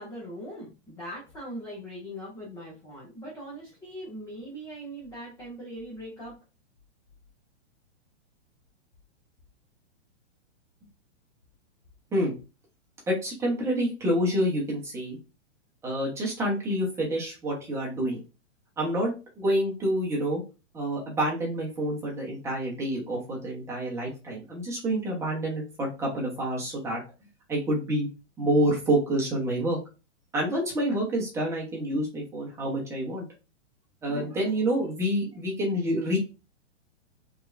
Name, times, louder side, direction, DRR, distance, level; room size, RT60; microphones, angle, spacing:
voice 1, 0.0-6.3, equal, 10° left, -5 dB, 0.7 m, -40 dB
voice 2, 13.1-15.2 15.8-18.2 18.8-20.4 20.7-27.0 27.5-28.1 28.4-29.8 30.3-33.3 34.0-36.2, right 1 dB, 10° right, -2 dB, 1.1 m, -28 dB
4.3 x 3.5 x 2.6 m, 0.30 s
hypercardioid pair, 160°, 36 cm